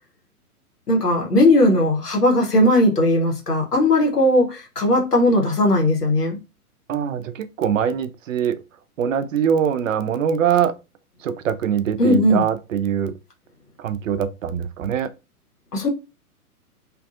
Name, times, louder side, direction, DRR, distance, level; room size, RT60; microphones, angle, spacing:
voice 1, 0.9-6.4 12.0-12.4 15.7-15.9, left 1 dB, 85° left, 1.1 m, -18 dB
voice 2, 6.9-8.6 9.0-10.7 11.2-13.1 13.8-15.1, right 8 dB, 60° right, 0.5 m, -23 dB
2.5 x 2.4 x 2.6 m
figure-of-eight pair, 115°, 46 cm